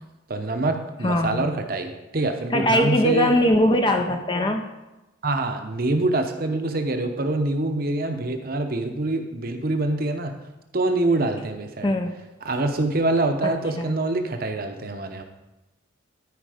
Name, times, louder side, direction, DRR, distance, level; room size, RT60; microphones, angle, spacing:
voice 1, 0.3-3.3 5.2-10.3 10.7-11.9 12.4-15.2, right 2 dB, 45° right, 6 dB, 0.9 m, -25 dB
voice 2, 1.0-1.5 2.5-4.6 11.8-12.1 13.4-13.9, left 1 dB, 25° left, 4 dB, 0.5 m, -21 dB
13.0 x 5.1 x 5.0 m, 1.0 s
head